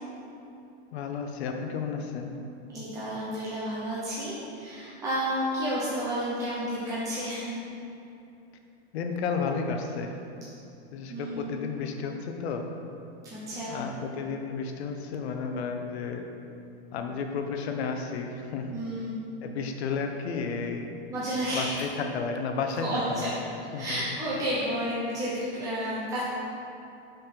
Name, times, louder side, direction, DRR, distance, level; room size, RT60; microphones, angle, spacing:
voice 1, 0.9-2.4 8.9-10.2 10.9-12.6 13.7-16.2 16.9-18.7 19.4-21.0 21.5-23.3 23.7-24.0, left 5 dB, 75° left, 4 dB, 0.8 m, -32 dB
voice 2, 2.7-7.6 11.1-11.6 13.3-13.8 18.7-19.2 21.1-21.8 22.8-23.3 23.8-26.2, equal, 10° right, -10 dB, 0.8 m, -31 dB
5.7 x 5.2 x 4.4 m, 2.6 s
supercardioid pair, 165°, 32 cm